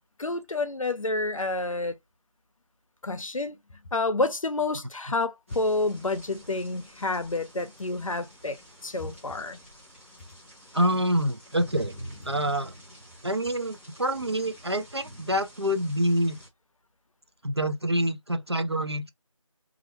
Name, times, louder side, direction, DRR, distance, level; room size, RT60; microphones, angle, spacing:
voice 1, 0.2-2.0 3.0-3.6 3.9-9.6, left 2 dB, 75° left, 0.6 m, -29 dB
sound 1, 5.5-16.5, equal, 25° right, 1.0 m, -47 dB
voice 2, 10.7-11.9 12.2-12.7 13.2-16.4 17.4-19.1, equal, 50° right, 0.5 m, -26 dB
2.4 x 2.1 x 2.9 m
figure-of-eight pair, 180°, 17 cm